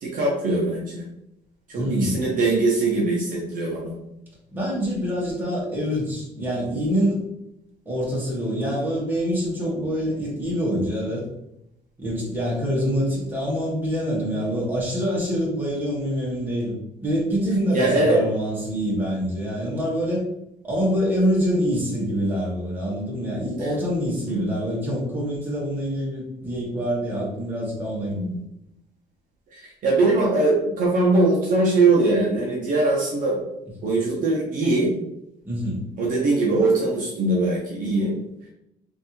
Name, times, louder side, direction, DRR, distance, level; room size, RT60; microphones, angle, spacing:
voice 1, 0.0-1.1 1.7-4.0 17.7-18.2 23.6-23.7 24.3-24.5 28.1-28.4 29.5-33.4 33.8-34.9 36.0-38.1, right 2 dB, 55° right, -3 dB, 0.8 m, -21 dB
voice 2, 1.7-2.2 4.5-7.2 7.8-11.2 12.0-20.2 20.6-28.2 35.4-35.8, equal, 10° right, -6 dB, 1.5 m, -25 dB
3.2 x 2.7 x 2.9 m, 0.82 s
cardioid pair, 110°, 17 cm